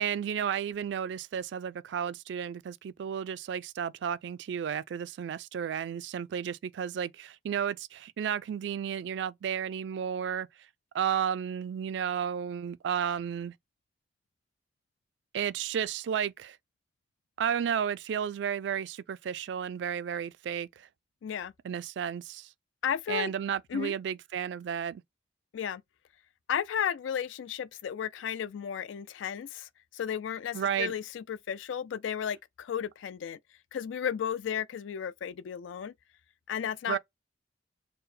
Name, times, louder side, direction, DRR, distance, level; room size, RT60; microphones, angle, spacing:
voice 1, 0.0-10.5 10.9-13.5 15.3-16.6 17.4-20.9 21.6-22.5 23.1-25.0 30.5-30.9 36.9-37.0, right 8 dB, 70° right, 0.3 m, -32 dB
voice 2, 21.2-21.5 22.8-23.3 23.7-23.9 25.5-25.8 26.5-33.4 33.7-35.9 36.5-37.0, left 8 dB, 90° left, 0.3 m, -34 dB
4.5 x 2.1 x 3.2 m
head